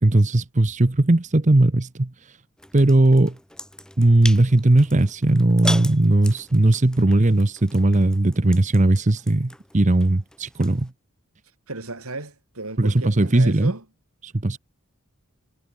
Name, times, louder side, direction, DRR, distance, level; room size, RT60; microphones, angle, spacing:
voice 1, 0.0-2.1 2.7-3.4 4.0-10.9 12.8-13.7 14.2-14.6, right 2 dB, 35° right, 0.9 m, -18 dB
sound 1, 2.6-10.9, left 1 dB, 5° left, 3.9 m, -38 dB
voice 2, 11.7-13.8, right 2 dB, 85° right, 4.8 m, -34 dB
head